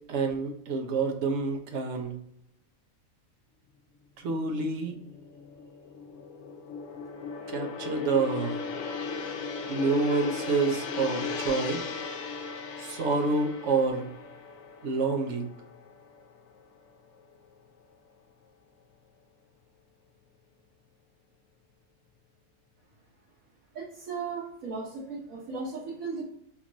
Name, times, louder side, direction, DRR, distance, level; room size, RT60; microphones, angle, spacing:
voice 1, 0.0-2.2 4.2-4.9 7.5-8.6 9.7-11.8 12.8-14.1 14.8-15.5, right 4 dB, 60° right, 4 dB, 0.9 m, -28 dB
Gong, 4.5-16.8 17.1-17.4, left 4 dB, 70° left, 0.9 m, -37 dB
voice 2, 23.7-26.2, right 4 dB, 85° right, -7 dB, 1.5 m, -36 dB
3.6 x 2.9 x 2.5 m, 0.75 s
omnidirectional pair, 1.4 m